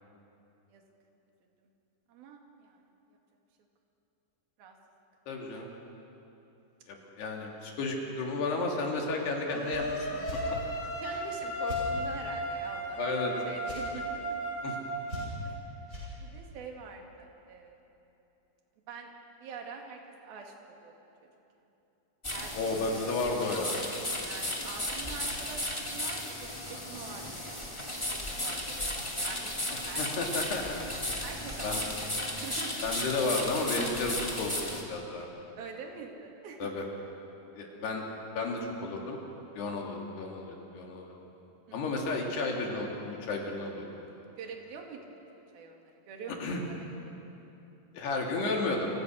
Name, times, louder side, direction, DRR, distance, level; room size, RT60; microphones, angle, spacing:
voice 1, 2.1-2.8 4.6-4.8 11.0-13.0 13.4-14.3 15.5-15.6 16.2-17.8 18.9-19.1 19.4-20.9 22.3-22.6 22.9-23.0 24.2-26.6 26.9-27.6 28.1-29.6 29.9-30.1 30.4-30.5 31.2-32.0 32.3-32.8 35.6-36.9 41.7-41.8 44.4-45.2 45.5-46.4 46.7-47.1, right 5 dB, 60° right, 2 dB, 3.8 m, -45 dB
voice 2, 5.3-5.7 6.9-10.4 13.0-13.3 14.6-14.8 22.5-23.8 29.7-30.8 31.6-31.8 32.8-35.3 36.6-36.8 37.6-38.0 38.3-39.2 39.6-41.2 41.7-43.9 46.4-46.6 47.9-48.9, left 3 dB, 65° left, 0 dB, 4.5 m, -32 dB
sound 1, 9.5-15.3, equal, 45° left, 5.0 m, -35 dB
sound 2, 9.7-9.8 10.2-10.4 11.7-11.8 13.6-13.8 15.1-15.5 15.9-16.1, left 1 dB, 15° right, 8.2 m, -40 dB
sound 3, 22.2-34.8, left 1 dB, 10° left, 1.7 m, -35 dB
29.5 x 25.0 x 6.4 m, 3.0 s
omnidirectional pair, 5.3 m